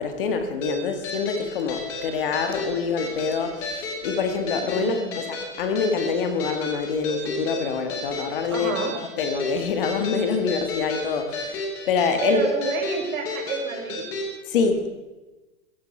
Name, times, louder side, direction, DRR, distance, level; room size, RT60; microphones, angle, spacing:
voice 1, 0.0-11.6 11.9-12.4 14.5-14.9, left 5 dB, 40° left, 7 dB, 1.7 m, -26 dB
sound 1, 0.6-14.3, left 2 dB, 5° left, 0.6 m, -32 dB
voice 2, 4.7-5.2 8.5-8.9 12.2-14.1, right 4 dB, 70° right, 2 dB, 4.8 m, -29 dB
16.0 x 15.0 x 5.4 m, 1.1 s
hypercardioid pair, 175°, 42 cm